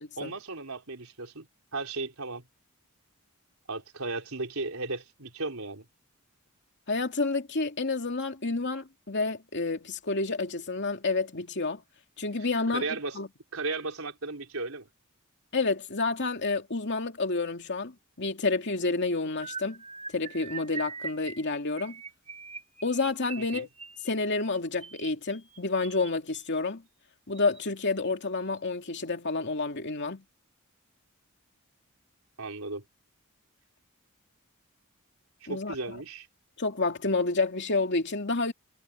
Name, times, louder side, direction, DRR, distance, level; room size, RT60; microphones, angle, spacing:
voice 1, 0.2-1.5 1.7-2.5 3.7-5.9 12.7-13.2 13.5-14.9 23.5-23.7 32.4-32.8 35.4-36.3, right 3 dB, 85° right, 4.0 m, -35 dB
voice 2, 6.9-11.8 12.2-12.8 13.1-13.3 15.5-19.8 20.1-22.0 22.8-23.7 24.0-26.8 27.3-30.2 35.5-35.7 36.6-38.5, left 3 dB, 55° left, 2.6 m, -29 dB
sound 1, 19.4-26.6 27.3-27.6 27.9-28.1 28.4-28.6, right 5 dB, 30° right, 5.8 m, -43 dB
head